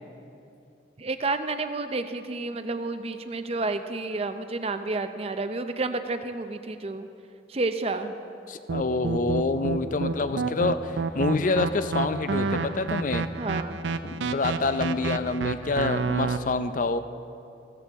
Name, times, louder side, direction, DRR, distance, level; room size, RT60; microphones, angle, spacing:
voice 1, 1.0-7.1 7.5-8.1 10.1-10.2 13.4-13.8, right 3 dB, 35° right, 9 dB, 0.6 m, -30 dB
voice 2, 8.5-13.3 14.0-17.0, left 3 dB, 45° left, 11 dB, 0.5 m, -27 dB
sound 1, 8.7-16.4, right 4 dB, 80° right, 0.5 m, -29 dB
15.5 x 13.5 x 3.5 m, 2.7 s
head